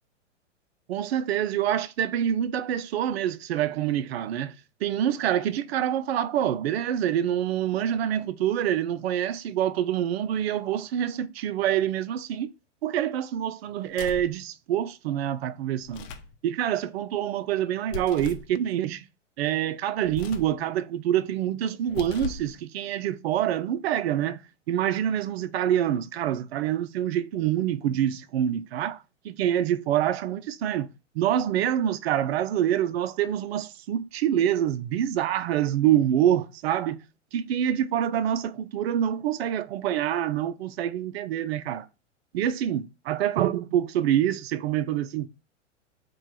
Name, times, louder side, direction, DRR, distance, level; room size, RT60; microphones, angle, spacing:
voice 1, 0.9-4.5 4.8-12.5 12.8-16.1 16.4-19.0 19.4-24.4 24.7-30.9 31.1-37.0 37.3-41.9 42.3-45.3, right 10 dB, 55° right, 0.5 m, -26 dB
sound 1, 13.9-14.4 15.8-16.3 17.9-18.5 20.0-20.6 21.8-22.5, left 4 dB, 45° left, 0.7 m, -37 dB
4.4 x 2.3 x 4.6 m
hypercardioid pair, 115°, 37 cm